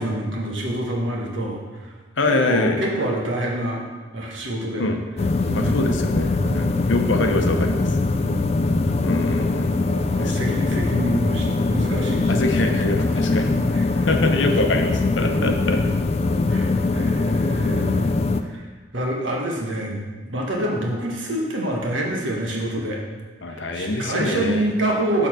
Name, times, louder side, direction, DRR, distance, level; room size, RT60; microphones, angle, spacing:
voice 1, 0.0-1.9 2.3-3.8 4.1-4.9 5.5-5.9 6.4-6.9 7.9-8.8 9.9-12.3 13.1-13.4 13.7-14.2 15.2-16.0 16.5-18.1 18.5-18.6 18.9-23.0 23.5-25.3, right 1 dB, 80° right, -1 dB, 1.4 m, -27 dB
voice 2, 2.2-2.8 4.8-5.0 5.5-7.9 9.0-9.8 10.2-10.4 12.3-13.5 14.1-15.8 23.4-24.7, left 2 dB, 75° left, 4 dB, 0.8 m, -24 dB
sound 1, 5.2-18.4, left 3 dB, 30° left, 0.3 m, -22 dB
6.7 x 3.8 x 6.1 m, 1.3 s
head